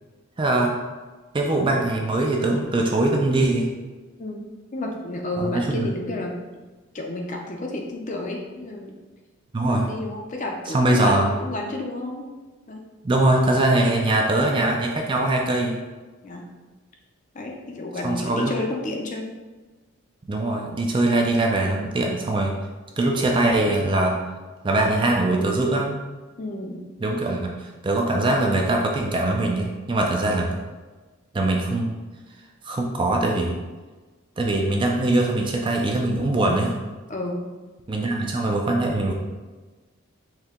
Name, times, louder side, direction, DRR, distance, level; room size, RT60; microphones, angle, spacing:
voice 1, 0.4-0.7 1.3-3.7 5.4-5.9 9.5-9.9 10.7-11.3 13.0-15.8 18.0-18.5 20.3-22.5 23.0-24.2 24.6-26.0 27.0-30.5 31.3-32.0 32.6-33.5 34.4-36.8 37.9-39.1, right 2 dB, 25° right, 1 dB, 0.4 m, -22 dB
voice 2, 4.7-6.4 6.9-8.9 9.9-12.3 12.7-12.8 16.2-16.5 17.3-19.3 26.4-26.8 37.1-37.4, left 2 dB, 35° left, 1 dB, 0.5 m, -31 dB
4.4 x 2.8 x 3.6 m, 1.3 s
head